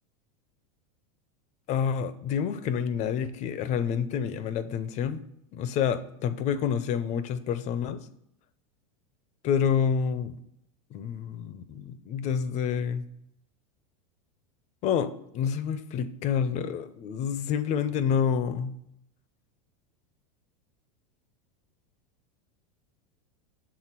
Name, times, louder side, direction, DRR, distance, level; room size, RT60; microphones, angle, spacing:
voice 1, 1.7-5.2 5.5-8.0 9.4-10.4 10.9-13.0 14.8-18.7, left 7 dB, 40° left, 13 dB, 0.5 m, -28 dB
6.8 x 3.8 x 5.8 m, 0.77 s
supercardioid pair, 130°, 19 cm